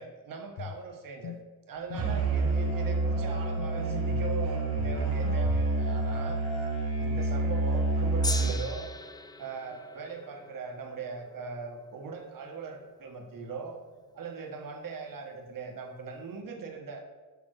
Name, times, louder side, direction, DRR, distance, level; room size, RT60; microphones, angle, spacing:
voice 1, 0.0-1.4 1.7-6.4 7.0-8.9 9.4-13.8 14.1-17.0, right 5 dB, 55° right, 3 dB, 1.3 m, -40 dB
sound 1, 0.6-0.8 1.2-1.4 1.9-2.7 3.6-4.3 4.8-5.7, left 10 dB, 75° left, 0.5 m, -40 dB
Musical instrument, 1.9-8.7, right 2 dB, 70° right, 2.6 m, -28 dB
Gong, 8.2-14.6 15.4-15.5, left 2 dB, 10° left, 0.3 m, -42 dB
7.2 x 5.3 x 6.3 m, 1.3 s
wide cardioid pair, 180°, 39 cm